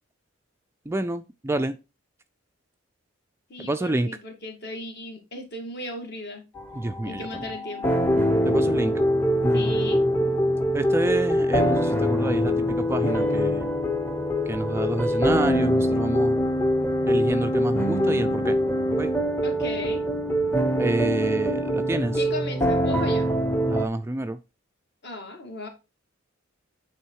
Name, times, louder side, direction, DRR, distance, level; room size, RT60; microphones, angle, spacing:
voice 1, 0.9-1.8 3.6-4.1 6.8-7.5 8.5-8.9 10.7-13.7 14.5-16.4 17.1-18.6 18.9-19.1 20.8-22.2 23.7-24.4, right 1 dB, 10° right, 0.3 m, -28 dB
voice 2, 3.5-6.5 7.0-8.0 9.5-10.0 19.4-20.0 22.2-23.3 25.0-25.7, left 2 dB, 50° left, 1.9 m, -36 dB
sound 1, 6.6-23.9, equal, 10° left, 0.7 m, -23 dB
8.8 x 3.5 x 4.6 m
head